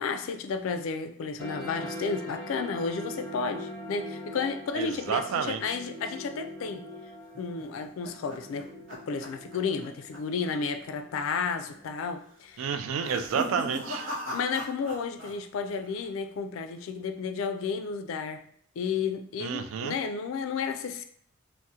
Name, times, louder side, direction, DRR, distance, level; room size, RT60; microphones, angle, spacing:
voice 1, 0.0-6.9 7.4-12.6 14.3-18.4 18.8-21.0, left 5 dB, 85° left, 8 dB, 0.3 m, -32 dB
sound 1, 1.4-12.4, left 1 dB, 10° left, 0.6 m, -42 dB
voice 2, 4.7-5.8 12.6-14.1 19.4-19.9, right 6 dB, 90° right, 9 dB, 0.3 m, -30 dB
sound 2, 7.3-9.9 10.1-10.5 10.8-10.9 11.6-12.0 12.9-15.3 15.6-16.2, equal, 65° right, 0.9 m, -39 dB
3.5 x 2.0 x 2.7 m, 0.64 s
head